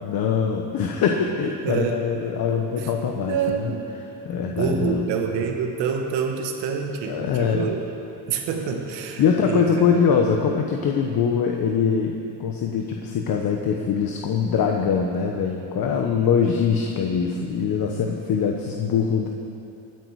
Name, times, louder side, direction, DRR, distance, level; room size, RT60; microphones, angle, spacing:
voice 1, 0.0-3.7 4.2-5.0 7.1-7.7 9.2-19.3, left 6 dB, 55° left, 2 dB, 1.1 m, -23 dB
voice 2, 1.6-2.0 2.8-2.9 3.2-3.9 4.5-7.8 8.3-9.7, right 6 dB, 85° right, 3 dB, 1.5 m, -27 dB
23.5 x 9.3 x 4.8 m, 2.9 s
cardioid pair, 120°, 41 cm